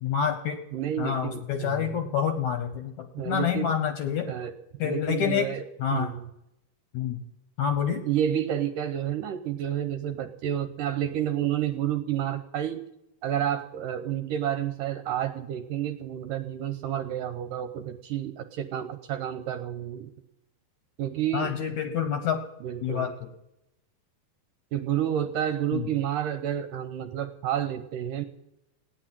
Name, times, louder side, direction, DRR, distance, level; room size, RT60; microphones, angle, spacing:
voice 1, 0.0-0.6 1.0-4.3 4.8-5.5 5.8-6.1 6.9-7.2 7.6-8.0 21.3-22.4 22.8-23.3 25.7-25.8, left 8 dB, 65° left, 7 dB, 1.9 m, -27 dB
voice 2, 0.7-2.0 3.1-3.7 4.3-4.5 4.8-5.7 5.9-6.3 8.0-12.8 13.2-20.1 21.0-21.5 22.6-23.1 24.7-28.2, right 10 dB, 75° right, 9 dB, 2.2 m, -30 dB
16.0 x 9.8 x 8.9 m, 0.86 s
omnidirectional pair, 4.5 m